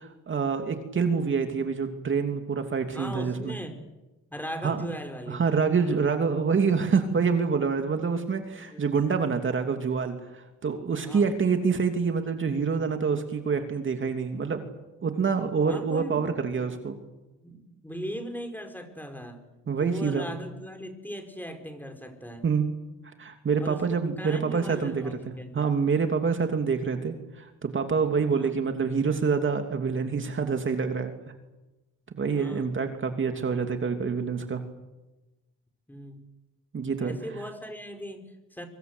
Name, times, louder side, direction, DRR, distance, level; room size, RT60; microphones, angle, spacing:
voice 1, 0.0-3.5 4.6-4.8 5.3-14.6 15.0-17.0 19.7-20.3 22.4-22.7 23.2-25.1 25.5-31.1 32.1-34.6 36.7-37.2, right 5 dB, 40° right, 5 dB, 2.9 m, -26 dB
voice 2, 2.9-3.8 4.3-5.4 5.7-6.0 8.7-8.8 11.0-11.3 15.7-16.6 17.4-19.4 19.8-22.4 23.6-25.7 28.3-28.5 32.3-32.7 35.9-36.2 37.0-38.7, equal, 5° left, 6 dB, 4.8 m, -39 dB
25.5 x 24.5 x 8.1 m, 1.1 s
cardioid pair, 90°, 30 cm